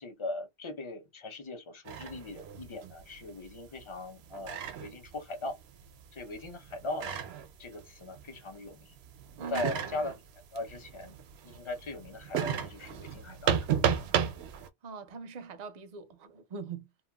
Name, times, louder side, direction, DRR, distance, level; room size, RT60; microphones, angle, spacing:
voice 1, 0.0-5.6 6.1-7.2 7.6-8.9 9.5-10.2 10.5-11.1 11.4-13.6, left 2 dB, 35° left, 0.6 m, -39 dB
sound 1, 1.9-8.7 8.9-14.7, right 8 dB, 80° right, 0.8 m, -34 dB
voice 2, 9.4-9.7 14.8-16.9, right 5 dB, 50° right, 0.6 m, -42 dB
3.0 x 2.3 x 2.2 m
omnidirectional pair, 1.1 m